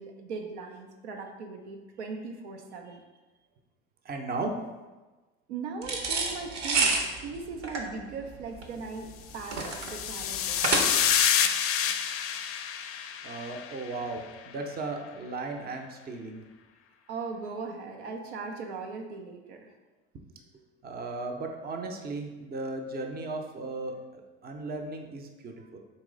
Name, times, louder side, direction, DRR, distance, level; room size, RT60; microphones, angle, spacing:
voice 1, 0.0-3.0 5.5-9.1 9.3-11.1 17.1-19.7, right 4 dB, 85° right, 2 dB, 0.7 m, -39 dB
voice 2, 4.0-4.6 13.2-16.5 20.8-25.8, right 3 dB, 30° right, 4 dB, 0.6 m, -36 dB
sound 1, 5.8-11.2, right 3 dB, 55° right, 0.9 m, -29 dB
sound 2, 9.4-13.9, left 9 dB, 45° left, 0.4 m, -28 dB
4.1 x 3.0 x 3.8 m, 1.2 s
hypercardioid pair, 75°, 33 cm